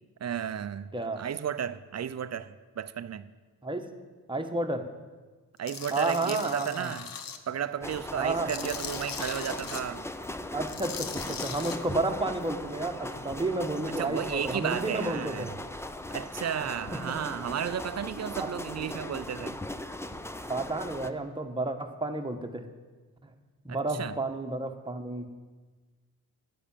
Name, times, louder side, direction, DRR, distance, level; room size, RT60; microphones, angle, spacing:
voice 1, 0.2-3.3 5.6-7.1 7.5-10.0 14.0-15.5 16.1-19.6 23.7-24.2, right 8 dB, 45° right, 0.6 m, -33 dB
voice 2, 0.9-1.3 3.6-3.9 4.3-4.9 5.9-6.9 8.1-8.5 10.5-15.5 16.9-17.0 18.4-18.5 20.5-22.7 23.2-23.3 23.6-25.3, right 2 dB, 10° right, 1.3 m, -31 dB
Tools, 5.7-7.4 7.8-9.8 10.6-11.8, left 6 dB, 60° left, 1.1 m, -39 dB
sound 1, 7.8-21.1, left 1 dB, 5° left, 0.6 m, -39 dB
10.0 x 8.8 x 7.2 m
cardioid pair, 70°, 38 cm